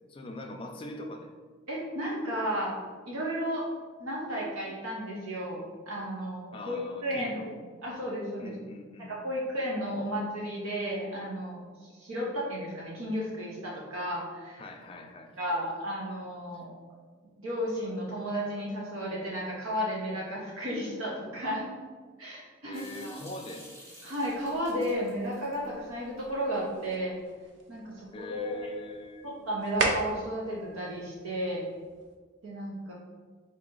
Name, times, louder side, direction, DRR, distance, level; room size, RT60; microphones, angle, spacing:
voice 1, 0.1-1.3 6.5-7.6 8.4-9.1 14.6-15.3 16.5-16.6 22.6-23.7 28.1-29.5, left 1 dB, 25° left, 3 dB, 0.3 m, -42 dB
voice 2, 1.7-2.7 3.0-3.7 4.0-7.3 7.8-8.5 9.0-11.6 12.0-14.6 15.4-16.8 17.4-21.6 22.2-23.1 24.0-27.2 27.7-28.7 29.2-31.6 32.4-32.9, equal, 90° right, -4 dB, 0.8 m, -33 dB
Water tap faucet / Sink (filling or washing) / Drip, 22.7-26.8, equal, 15° right, 0.9 m, -52 dB
sound 1, 24.2-32.2, right 2 dB, 60° right, 0.5 m, -39 dB
3.9 x 2.8 x 3.8 m, 1.5 s
head